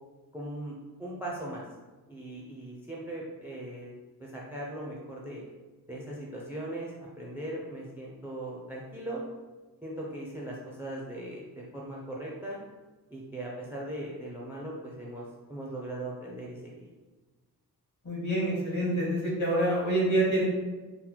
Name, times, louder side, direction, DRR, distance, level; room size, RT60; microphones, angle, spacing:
voice 1, 0.3-1.6 2.1-3.9 4.2-5.4 5.9-9.2 9.8-12.6 13.1-16.9, right 1 dB, 5° right, -4 dB, 0.5 m, -39 dB
voice 2, 18.0-20.4, right 1 dB, 50° left, -4 dB, 1.5 m, -26 dB
3.8 x 2.1 x 4.3 m, 1.3 s
wide cardioid pair, 150°, 38 cm